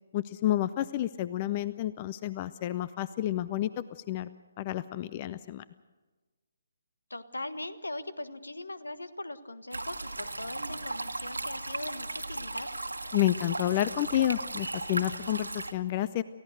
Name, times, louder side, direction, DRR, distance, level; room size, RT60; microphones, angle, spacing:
voice 1, 0.1-3.7 4.1-4.3 4.6-5.6 13.1-16.2, left 13 dB, 30° left, 16 dB, 0.6 m, -30 dB
voice 2, 7.1-12.7, left 2 dB, 80° left, 12 dB, 1.5 m, -40 dB
sound 1, 9.7-15.7, right 2 dB, 85° right, 1.6 m, -36 dB
29.5 x 15.5 x 6.6 m, 1.3 s
figure-of-eight pair, 140°, 0 cm